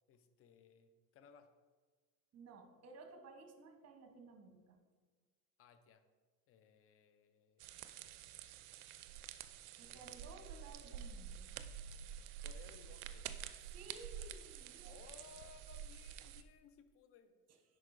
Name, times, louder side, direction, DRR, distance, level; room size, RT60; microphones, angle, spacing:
voice 1, 0.1-1.5 5.6-6.1 6.5-8.5 9.8-10.1 12.4-13.3 14.8-17.4, left 7 dB, 30° left, 10 dB, 0.5 m, -62 dB
voice 2, 2.3-4.8 9.8-11.5 13.7-15.0, right 3 dB, 30° right, 5 dB, 1.1 m, -56 dB
sound 1, 7.6-16.4, right 9 dB, 65° right, 0.5 m, -49 dB
10.0 x 4.6 x 2.6 m, 1.4 s
figure-of-eight pair, 60°, 49 cm